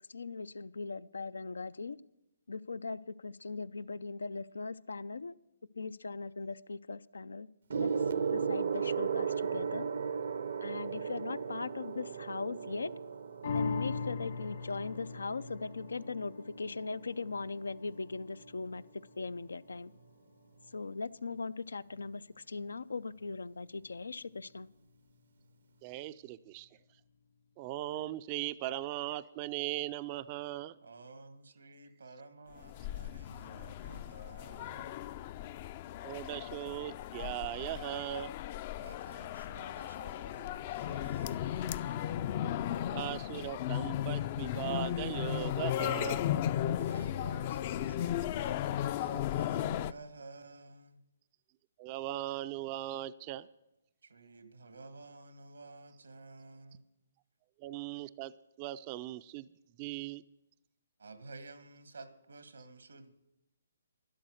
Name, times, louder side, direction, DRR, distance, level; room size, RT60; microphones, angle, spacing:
voice 1, 0.1-2.0 2.5-5.3 5.7-7.5 7.7-7.9 8.3-9.9 10.6-12.9 13.5-18.8 19.2-19.9 20.7-24.7, left 4 dB, 85° left, 17 dB, 0.5 m, -39 dB
Gong, 7.7-17.5 18.4-18.7, right 6 dB, 70° right, 0.7 m, -36 dB
sound 1, 13.4-20.1 20.6-20.7, left 5 dB, 60° left, 1.5 m, -41 dB
voice 2, 25.8-26.7 27.6-30.8 36.0-38.3 42.9-46.2 51.8-53.5 57.6-58.3 58.6-59.5 59.8-60.2, right 14 dB, 30° right, 14 dB, 0.4 m, -38 dB
voice 3, 30.8-35.0 38.8-42.2 46.8-51.0 54.0-56.8 61.0-63.1, right 3 dB, 85° right, 11 dB, 1.6 m, -52 dB
sound 2, 32.6-49.9, left 11 dB, 35° left, 0.4 m, -36 dB
12.5 x 11.0 x 6.4 m, 0.94 s
hypercardioid pair, 150°, 0 cm